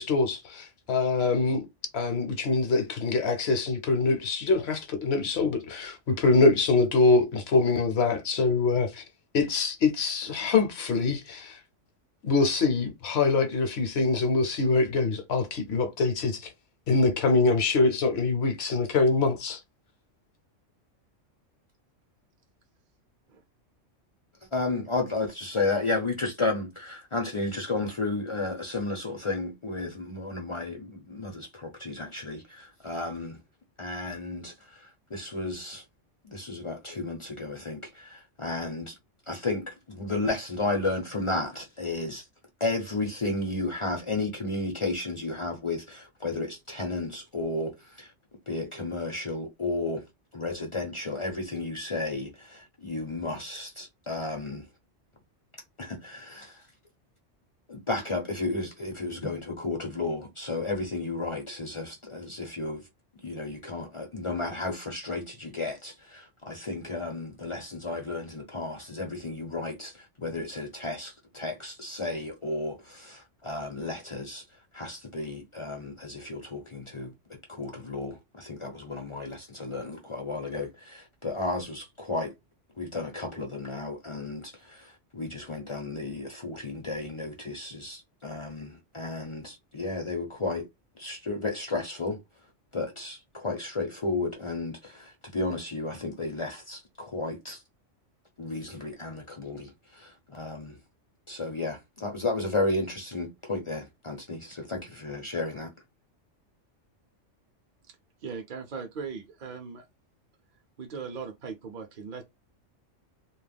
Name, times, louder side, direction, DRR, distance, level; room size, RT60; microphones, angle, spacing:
voice 1, 0.0-1.7 1.9-9.0 9.3-11.6 12.2-16.5 16.9-19.6, left 3 dB, 65° left, 0.8 m, -24 dB
voice 2, 24.5-33.4 33.8-35.8 36.2-39.0 39.3-42.2 42.6-48.1 48.5-50.1 50.3-54.6 55.8-56.7 57.7-62.8 63.2-74.4 74.7-82.3 82.8-90.7 91.0-92.2 92.7-97.6 98.4-100.8 101.3-105.7, left 2 dB, 40° left, 0.4 m, -33 dB
voice 3, 108.2-109.8 110.8-112.2, right 5 dB, 55° right, 0.6 m, -39 dB
2.3 x 2.1 x 3.3 m
omnidirectional pair, 1.3 m